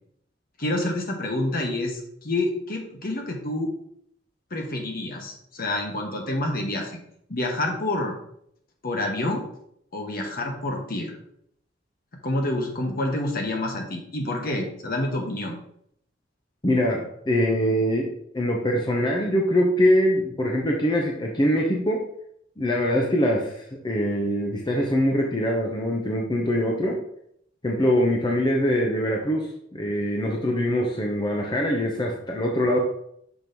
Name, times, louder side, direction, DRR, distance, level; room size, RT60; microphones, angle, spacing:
voice 1, 0.6-3.7 4.5-7.0 7.3-8.1 8.8-9.4 9.9-11.1 12.2-15.6, left 1 dB, 50° left, 2 dB, 1.2 m, -28 dB
voice 2, 16.6-22.0 22.6-27.0 27.6-32.8, equal, 25° left, 0 dB, 0.7 m, -23 dB
6.1 x 3.0 x 5.2 m, 0.71 s
head